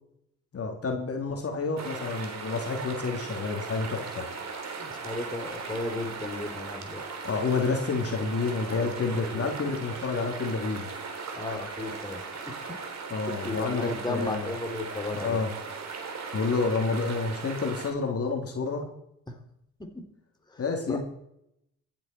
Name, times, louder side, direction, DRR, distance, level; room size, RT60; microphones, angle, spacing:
voice 1, 0.5-4.3 7.2-10.9 13.1-14.5 15.1-15.5 16.3-18.9 20.6-21.0, left 4 dB, 40° left, 2 dB, 3.2 m, -29 dB
sound 1, 1.8-17.9, right 4 dB, 45° right, 3.8 m, -38 dB
voice 2, 4.7-7.0 8.7-8.9 9.2-9.5 11.3-12.5 13.3-15.4 19.3-19.4 19.8-20.0 20.5-21.0, left 2 dB, 10° left, 3 dB, 3.6 m, -35 dB
26.0 x 9.1 x 4.5 m, 0.78 s
hypercardioid pair, 50°, 38 cm